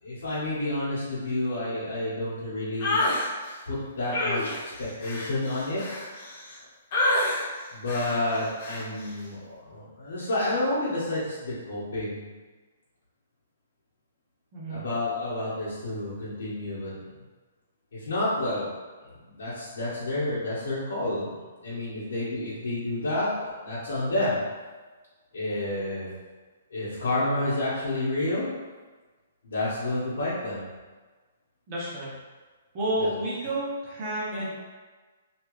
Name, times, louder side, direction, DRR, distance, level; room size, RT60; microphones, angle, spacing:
voice 1, 0.0-3.0 3.7-5.8 7.7-12.3 14.7-17.1 17.9-18.7 19.0-24.4 25.3-26.1 26.7-28.5 29.4-30.6 33.0-33.1, left 1 dB, 80° left, -10 dB, 1.4 m, -30 dB
sound 1, 2.8-3.3 4.1-6.6 6.9-7.5 7.9-8.2 8.6-8.9, left 1 dB, 35° left, 0.7 m, -27 dB
voice 2, 31.7-32.1 32.7-34.5, right 1 dB, 25° right, -7 dB, 0.9 m, -30 dB
3.3 x 2.9 x 3.1 m, 1.3 s
hypercardioid pair, 175°, 0 cm